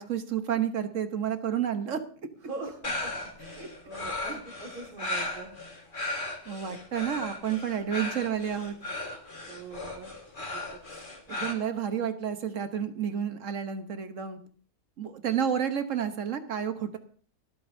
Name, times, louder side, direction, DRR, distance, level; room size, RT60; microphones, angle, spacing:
voice 1, 0.0-2.0 3.6-3.7 4.3-4.4 6.5-8.8 11.3-14.4 15.0-17.0, right 8 dB, 60° right, 8 dB, 1.3 m, -30 dB
voice 2, 2.4-5.5 9.5-10.1 10.5-10.8, right 3 dB, 75° right, 0 dB, 2.6 m, -43 dB
sound 1, 2.8-11.5, left 2 dB, 35° left, 1.8 m, -36 dB
25.0 x 8.5 x 2.7 m, 0.44 s
omnidirectional pair, 1.6 m